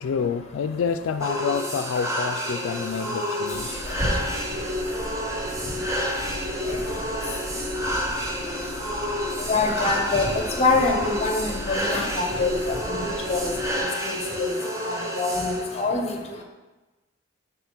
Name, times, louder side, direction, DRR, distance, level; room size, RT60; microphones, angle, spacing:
voice 1, 0.0-3.8, left 6 dB, 80° left, 8 dB, 0.3 m, -28 dB
sound 1, 1.2-15.8, equal, 15° right, 0.7 m, -29 dB
sound 2, 3.5-13.8, left 1 dB, 10° left, 1.8 m, -36 dB
voice 2, 9.5-13.0 13.3-13.5 14.0-14.5 14.8-16.1, left 3 dB, 30° left, 3 dB, 1.0 m, -25 dB
8.0 x 3.6 x 5.9 m, 1.1 s
head